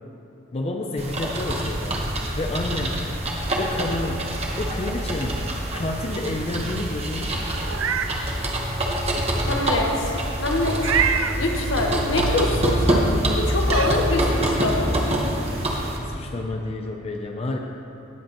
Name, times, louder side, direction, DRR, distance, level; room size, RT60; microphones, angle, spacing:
voice 1, 0.5-2.0 2.4-3.1 3.6-7.5 16.1-17.6, left 2 dB, 30° left, 2 dB, 0.5 m, -30 dB
sound 1, 1.0-16.0, right 1 dB, 30° right, 1.2 m, -25 dB
Meow, 7.6-8.1 8.6-8.7 10.8-11.4 13.0-13.1 13.6-13.9, right 7 dB, 80° right, 0.5 m, -24 dB
voice 2, 9.4-13.1 13.3-14.9, left 2 dB, 70° left, 0 dB, 1.3 m, -25 dB
18.5 x 7.8 x 3.0 m, 2.9 s
head